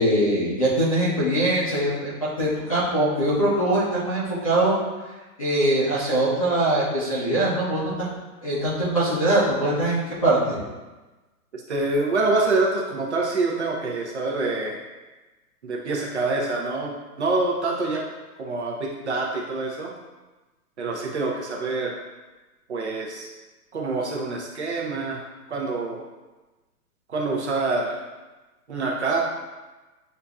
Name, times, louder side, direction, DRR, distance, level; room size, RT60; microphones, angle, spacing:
voice 1, 0.0-4.8 5.4-8.1 8.4-10.6, right 1 dB, 20° left, -9 dB, 0.6 m, -22 dB
voice 2, 11.5-14.7 15.6-16.9 17.2-18.0 18.4-19.9 20.8-22.0 22.7-23.3 23.7-25.2 25.5-26.0 27.1-28.0 28.7-29.2, right 3 dB, 45° right, -2 dB, 0.8 m, -26 dB
7.8 x 2.7 x 2.3 m, 1.2 s
hypercardioid pair, 175°, 47 cm